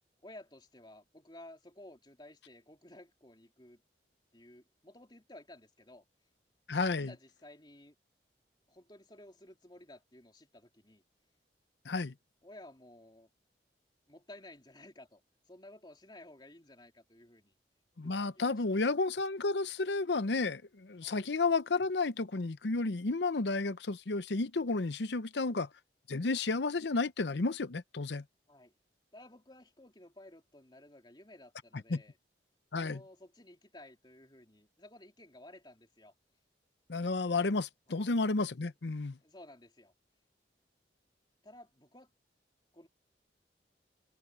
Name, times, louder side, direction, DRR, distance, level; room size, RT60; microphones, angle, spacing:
voice 1, 0.2-3.8 4.3-6.0 7.0-7.9 8.7-11.0 12.4-13.3 14.1-15.2 15.5-17.6 18.0-18.9 21.0-21.3 28.5-28.7 29.1-32.2 32.7-36.1 37.9-38.2 39.2-39.9 41.4-42.1 42.7-42.9, left 1 dB, 25° left, 3.6 m, -55 dB
voice 2, 6.7-7.1 11.8-12.1 18.0-25.7 26.1-28.2 31.9-32.0 32.7-33.0 36.9-39.2, left 3 dB, 75° left, 0.8 m, -32 dB
head